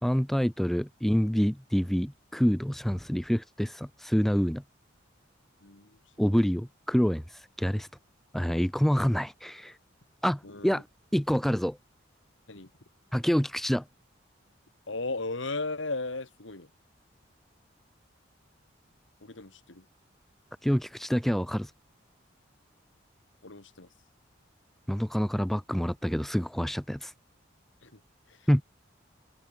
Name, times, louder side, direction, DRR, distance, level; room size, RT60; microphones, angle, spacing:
voice 1, 0.0-4.6 6.2-7.9 8.3-9.8 10.2-10.8 11.1-11.8 13.1-13.8 20.6-21.7 24.9-27.1 28.5-28.6, equal, ahead, 0.3 m, -27 dB
voice 2, 5.6-6.0 10.4-10.8 12.5-12.7 14.9-16.7 19.2-19.9 23.4-23.9 27.8-28.0 28.3-28.5, left 3 dB, 80° left, 2.3 m, -36 dB
head